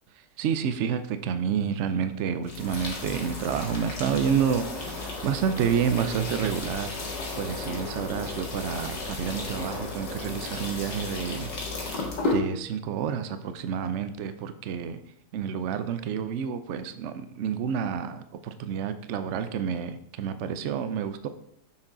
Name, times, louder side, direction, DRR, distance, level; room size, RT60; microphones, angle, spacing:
voice 1, 0.4-7.0 7.3-11.5 11.8-15.0 15.3-21.3, right 7 dB, 80° right, 10 dB, 0.6 m, -29 dB
sound 1, 2.4-12.4, left 3 dB, 80° left, 2.2 m, -34 dB
7.3 x 6.3 x 3.9 m, 0.70 s
omnidirectional pair, 1.9 m